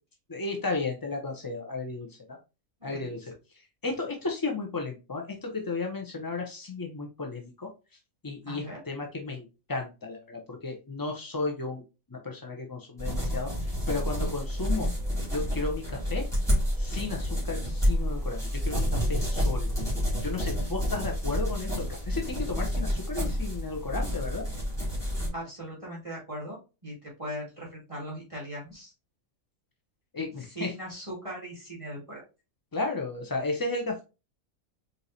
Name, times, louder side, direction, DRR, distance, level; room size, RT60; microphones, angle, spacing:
voice 1, 0.3-2.1 2.8-3.2 3.8-7.7 8.2-11.8 12.1-13.5 13.9-14.9 15.3-16.2 16.8-18.4 18.7-19.7 20.2-24.4 30.1-30.7 32.7-34.0, left 3 dB, 30° left, 2 dB, 0.4 m, -34 dB
voice 2, 2.8-3.3 8.4-8.8 25.3-28.9 30.4-32.2, right 1 dB, 25° right, -5 dB, 1.9 m, -39 dB
sound 1, 13.0-25.3, equal, ahead, 2.4 m, -29 dB
4.6 x 4.0 x 2.7 m, 0.29 s
omnidirectional pair, 1.4 m